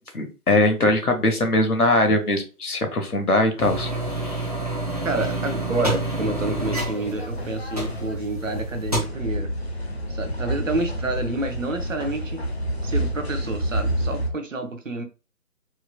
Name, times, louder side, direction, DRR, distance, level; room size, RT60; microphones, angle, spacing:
voice 1, 0.1-3.9, left 2 dB, 70° left, 1.2 m, -21 dB
sound 1, 3.6-8.4 8.7-9.0, right 1 dB, 25° right, 0.6 m, -28 dB
voice 2, 5.0-9.5 10.1-12.4 12.8-15.0, right 2 dB, 55° right, 0.8 m, -29 dB
sound 2, 6.4-14.3, equal, 45° left, 0.6 m, -29 dB
4.5 x 2.8 x 2.3 m
figure-of-eight pair, 150°, 48 cm